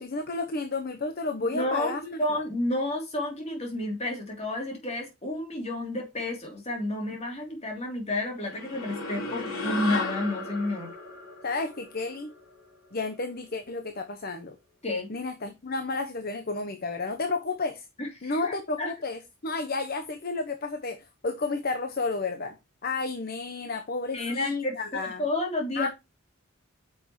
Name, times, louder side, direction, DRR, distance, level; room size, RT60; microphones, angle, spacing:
voice 1, 0.0-2.2 11.4-12.3 12.9-14.6 15.1-17.8 18.2-25.2 25.8-25.9, left 3 dB, 50° left, 1.0 m, -32 dB
voice 2, 1.5-10.9 14.8-15.1 18.0-18.9 24.1-25.9, left 1 dB, 30° left, 3.2 m, -31 dB
sound 1, 8.4-13.1, left 2 dB, 90° left, 4.1 m, -35 dB
9.2 x 6.1 x 3.1 m
head